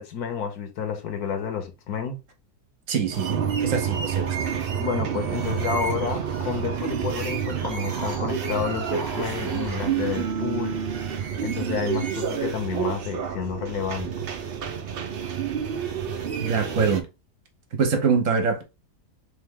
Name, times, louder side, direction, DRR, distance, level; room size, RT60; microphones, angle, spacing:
voice 1, 0.0-2.2 4.8-10.8 11.4-14.3, left 7 dB, 70° left, 1.3 m, -30 dB
voice 2, 2.9-4.3 16.4-17.0 17.8-18.6, right 5 dB, 60° right, 1.1 m, -24 dB
sound 1, 3.1-17.0, right 8 dB, 85° right, 0.5 m, -29 dB
sound 2, 6.9-10.2, right 1 dB, 25° right, 1.2 m, -40 dB
3.4 x 3.4 x 3.5 m
omnidirectional pair, 1.7 m